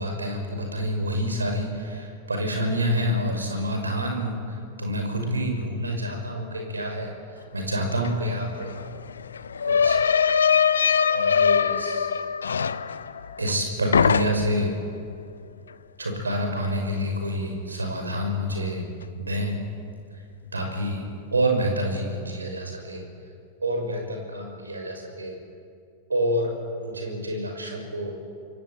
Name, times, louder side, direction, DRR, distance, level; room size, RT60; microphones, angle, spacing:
voice 1, 0.0-8.7 9.7-10.0 11.1-12.1 13.4-14.7 16.0-18.9 19.1-19.5 20.5-21.0 21.3-23.0 23.6-25.3 26.1-26.5 26.8-28.1, equal, 80° right, 3 dB, 6.1 m, -28 dB
sound 1, 8.0-8.1 8.4-13.6 13.9-14.7, left 7 dB, 70° left, 0.8 m, -22 dB
27.0 x 22.5 x 9.0 m, 2.4 s
figure-of-eight pair, 90°, 0 cm